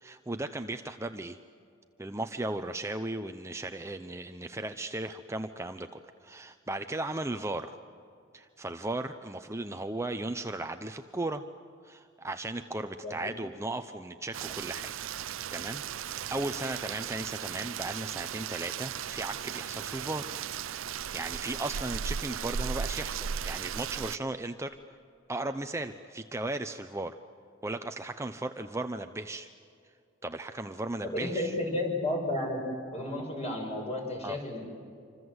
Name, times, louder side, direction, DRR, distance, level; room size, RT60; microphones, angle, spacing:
voice 1, 0.0-1.4 2.0-5.9 6.2-7.8 8.3-11.4 11.8-14.9 15.5-20.4 21.1-24.8 25.3-27.2 27.6-29.5 30.2-31.5 34.2-34.4, right 2 dB, 15° right, 7 dB, 0.7 m, -36 dB
Rain, 14.3-24.2, right 8 dB, 75° right, 0.6 m, -36 dB
voice 2, 31.0-32.7 32.9-34.7, left 1 dB, 35° left, 1 dB, 6.3 m, -32 dB
27.0 x 25.5 x 8.0 m, 2.4 s
head